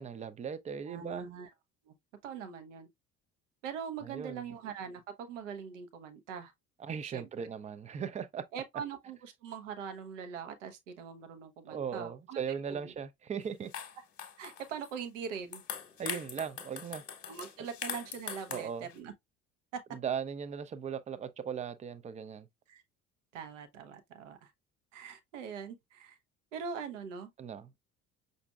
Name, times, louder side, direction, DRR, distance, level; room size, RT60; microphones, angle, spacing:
voice 1, 0.0-1.3 4.0-4.4 6.8-8.4 11.7-13.7 16.0-17.0 18.5-18.9 19.9-22.5 27.4-27.7, right 7 dB, 20° right, 0.4 m, -38 dB
voice 2, 0.9-1.5 1.9-2.0 2.2-2.9 3.6-6.5 7.0-7.5 8.5-12.4 12.7-12.9 14.4-15.6 17.2-19.1 19.7-19.8 22.7-22.8 23.3-24.5 24.9-26.2 26.5-27.3, right 6 dB, 70° right, 0.8 m, -42 dB
sound 1, 13.4-13.5 13.7-14.9 15.3-19.0, left 8 dB, 35° left, 1.1 m, -42 dB
5.8 x 2.6 x 2.2 m
figure-of-eight pair, 60°, 38 cm